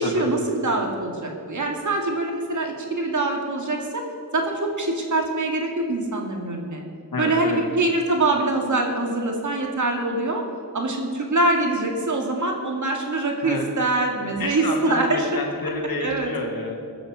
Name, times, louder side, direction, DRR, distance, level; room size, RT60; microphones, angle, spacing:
voice 1, 0.0-4.0 4.3-6.8 7.2-10.4 10.7-15.3 16.0-16.3, right 2 dB, 55° right, 1 dB, 2.4 m, -24 dB
voice 2, 7.1-7.6 13.4-13.6 14.4-16.8, left 2 dB, 80° left, 2 dB, 2.2 m, -30 dB
20.5 x 7.0 x 6.4 m, 2.4 s
wide cardioid pair, 85°, 35 cm